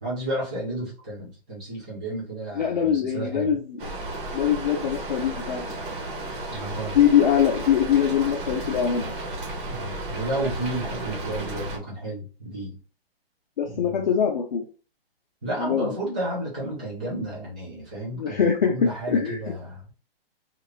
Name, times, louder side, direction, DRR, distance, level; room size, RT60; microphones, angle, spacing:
voice 1, 0.0-3.6 6.5-7.0 9.7-12.8 13.6-14.1 15.4-19.9, right 1 dB, 10° right, -6 dB, 0.4 m, -32 dB
voice 2, 2.6-3.8 4.3-5.8 6.9-9.1 13.6-14.6 15.6-15.9 18.2-19.4, left 8 dB, 45° left, 1 dB, 0.6 m, -23 dB
Rain, 3.8-11.8, right 2 dB, 55° right, 1.3 m, -33 dB
2.9 x 2.5 x 3.0 m, 0.36 s
hypercardioid pair, 160°, 31 cm